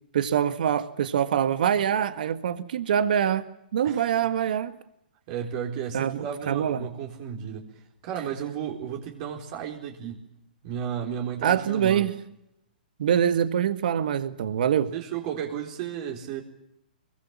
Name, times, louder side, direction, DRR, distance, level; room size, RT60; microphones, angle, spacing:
voice 1, 0.1-3.5 3.7-4.7 5.9-6.9 11.4-12.1 13.0-14.9, right 9 dB, 65° right, 11 dB, 1.7 m, -24 dB
voice 2, 5.3-7.6 8.0-10.2 10.6-12.1 14.9-16.4, right 8 dB, 45° right, 1 dB, 4.2 m, -33 dB
25.0 x 23.0 x 7.4 m, 0.79 s
hypercardioid pair, 130°, 5 cm